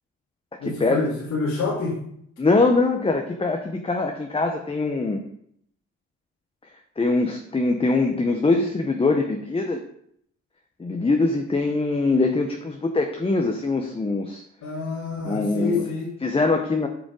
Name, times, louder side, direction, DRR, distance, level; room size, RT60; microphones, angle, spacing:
voice 1, 0.6-1.9 14.6-16.1, left 3 dB, 75° left, -6 dB, 2.8 m, -27 dB
voice 2, 2.4-5.2 7.0-9.8 10.8-14.4 15.2-15.8 16.2-16.9, left 3 dB, 20° left, 3 dB, 0.8 m, -22 dB
7.4 x 4.9 x 4.9 m, 0.69 s
cardioid pair, 90°, 30 cm